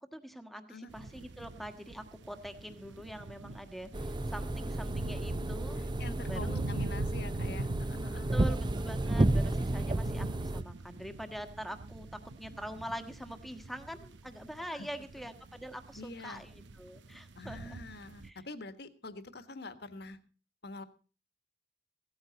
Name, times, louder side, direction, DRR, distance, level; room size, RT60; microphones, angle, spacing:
voice 1, 0.1-5.8 6.2-6.6 8.3-17.8 18.2-18.4, equal, ahead, 9 dB, 1.4 m, -44 dB
sound 1, 0.9-18.3, right 2 dB, 70° right, 0.9 m, -43 dB
sound 2, 3.9-10.6, right 1 dB, 25° right, 0.6 m, -32 dB
voice 2, 5.8-8.3 14.7-14.9 16.0-16.4 17.3-20.2 20.6-20.8, left 2 dB, 60° left, 11 dB, 1.5 m, -45 dB
16.5 x 13.5 x 4.1 m, 0.36 s
head